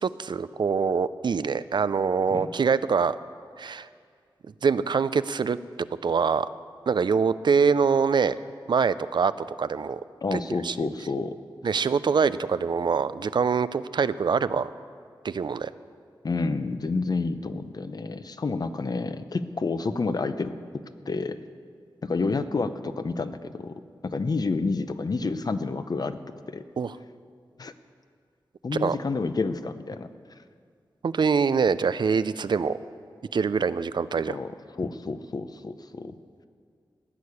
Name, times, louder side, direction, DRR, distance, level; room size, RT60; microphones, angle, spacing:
voice 1, 0.0-3.2 3.6-3.9 4.6-5.6 6.0-6.5 6.9-8.4 8.7-9.3 9.6-10.0 10.3-10.8 11.6-14.7 15.2-15.7 26.8-27.0 28.8-29.0 31.0-32.8 33.3-34.4, right 5 dB, 65° right, 15 dB, 0.4 m, -24 dB
voice 2, 10.2-11.4 16.2-20.6 21.1-21.4 22.0-23.7 24.0-26.2 26.5-26.6 27.6-27.7 28.6-30.1 34.3-36.1, left 3 dB, 50° left, 11 dB, 0.7 m, -29 dB
15.5 x 6.6 x 9.8 m, 2.1 s
wide cardioid pair, 80°, 8 cm